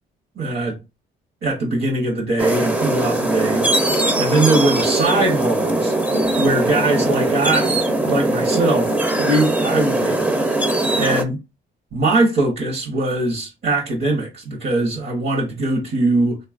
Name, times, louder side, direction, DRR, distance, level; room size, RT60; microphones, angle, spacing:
voice 1, 0.4-0.8 1.4-5.9 6.4-8.9 9.2-10.2 10.9-11.4 11.9-16.4, right 2 dB, 60° right, 0.9 m, -21 dB
sound 1, 2.4-11.2, right 2 dB, 10° right, 0.4 m, -20 dB
2.9 x 2.3 x 2.3 m
cardioid pair, 90°, 20 cm